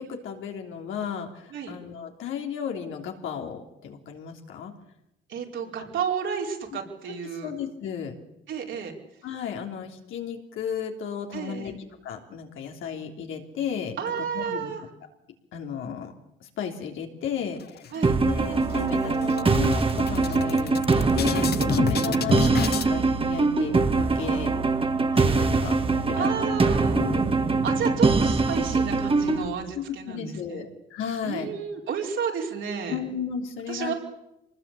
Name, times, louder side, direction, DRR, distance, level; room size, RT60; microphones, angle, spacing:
voice 1, 0.0-4.7 5.8-5.9 7.4-8.1 9.2-11.7 12.0-14.7 15.5-16.1 16.4-17.8 18.2-24.5 25.1-26.6 26.9-27.3 29.7-31.5 32.9-33.9, left 8 dB, 85° left, 3 dB, 3.3 m, -34 dB
voice 2, 5.3-7.5 8.5-8.9 11.3-11.8 14.0-14.8 17.9-18.1 22.0-22.5 26.1-27.0 27.6-30.7 31.2-33.0 33.7-33.9, right 7 dB, 75° right, 0 dB, 5.0 m, -32 dB
sound 1, 17.6-18.3 18.7-18.8 19.1-22.9, left 9 dB, 55° left, 0.9 m, -31 dB
sound 2, 18.0-29.4, right 3 dB, 25° right, 1.8 m, -23 dB
25.0 x 20.0 x 8.5 m, 0.89 s
cardioid pair, 90°, 20 cm